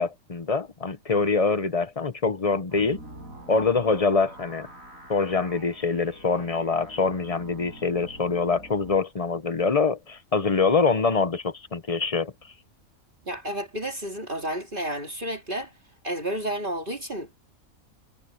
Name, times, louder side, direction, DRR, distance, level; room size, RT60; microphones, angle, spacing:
voice 1, 0.0-3.0 3.5-4.7 5.1-12.3, left 4 dB, 30° left, 0.9 m, -24 dB
sound 1, 2.7-9.0, right 1 dB, 80° right, 7.1 m, -46 dB
voice 2, 13.3-15.7 16.0-17.4, right 1 dB, 35° right, 3.1 m, -31 dB
omnidirectional pair, 1.4 m